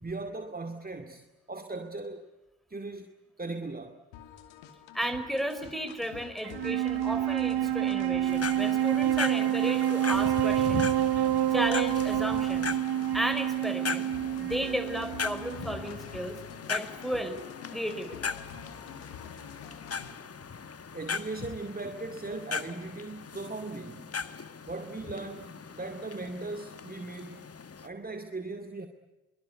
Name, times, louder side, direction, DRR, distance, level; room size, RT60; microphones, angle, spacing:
voice 1, 0.0-2.2 2.7-3.1 3.4-4.0 20.9-24.1 24.7-27.5 27.8-28.9, right 3 dB, 20° right, 2.3 m, -38 dB
sound 1, 4.1-20.1, left 9 dB, 75° left, 2.7 m, -47 dB
voice 2, 4.9-10.9 11.5-12.7 13.1-14.1 14.4-16.4 16.7-17.4 17.7-18.3, equal, ahead, 5.2 m, -34 dB
Wind instrument woodwind instrument, 6.4-15.9, right 12 dB, 60° right, 1.1 m, -28 dB
sound 2, 8.3-27.9, left 5 dB, 30° left, 1.5 m, -39 dB
23.5 x 23.5 x 9.6 m
hypercardioid pair, 45°, 44 cm